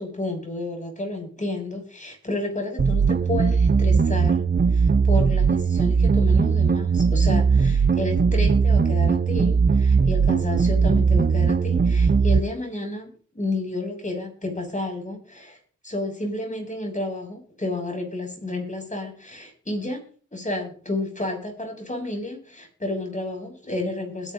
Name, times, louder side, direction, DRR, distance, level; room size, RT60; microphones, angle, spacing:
voice 1, 0.0-4.4 4.7-15.6 15.8-20.0 20.3-24.3, left 2 dB, 25° left, 3 dB, 6.5 m, -31 dB
sound 1, 2.8-12.4, right 5 dB, 35° right, 0.6 m, -19 dB
21.5 x 10.5 x 2.6 m, 0.42 s
cardioid pair, 70°, 30 cm